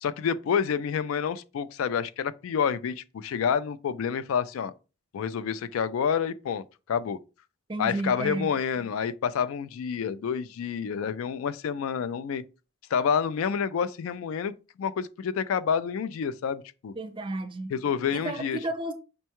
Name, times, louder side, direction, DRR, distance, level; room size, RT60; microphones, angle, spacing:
voice 1, 0.0-4.7 5.1-7.2 7.8-12.4 12.9-16.9 17.7-18.6, left 7 dB, 80° left, 0.3 m, -28 dB
voice 2, 7.7-8.5 17.0-17.7 18.1-18.9, right 2 dB, 25° right, 0.4 m, -32 dB
5.3 x 2.2 x 2.9 m
head